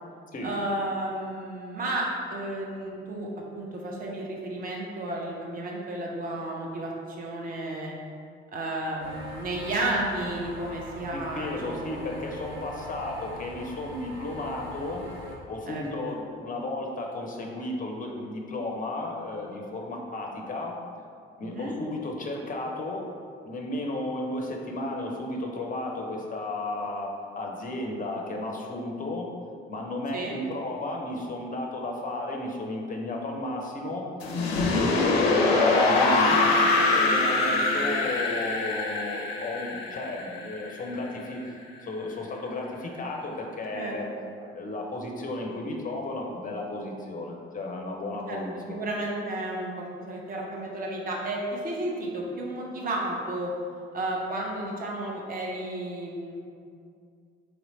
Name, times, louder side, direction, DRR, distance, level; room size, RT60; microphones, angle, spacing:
voice 1, 0.4-3.3 3.5-7.9 8.5-12.2 15.7-16.2 21.4-21.7 30.1-30.4 43.7-44.0 48.3-48.4 48.7-53.5 53.9-56.4, right 1 dB, 30° right, -2 dB, 0.7 m, -32 dB
sound 1, 9.0-15.4, equal, 90° right, 0.6 m, -42 dB
voice 2, 11.1-15.0 15.5-20.7 21.4-23.1 23.4-27.1 27.4-29.3 29.7-34.1 34.7-41.5 41.8-44.1 44.5-48.8, left 2 dB, 25° left, 0 dB, 0.6 m, -34 dB
sound 2, 34.2-41.1, left 3 dB, 75° left, 0.5 m, -24 dB
3.1 x 3.1 x 3.8 m, 2.3 s
figure-of-eight pair, 45°, 31 cm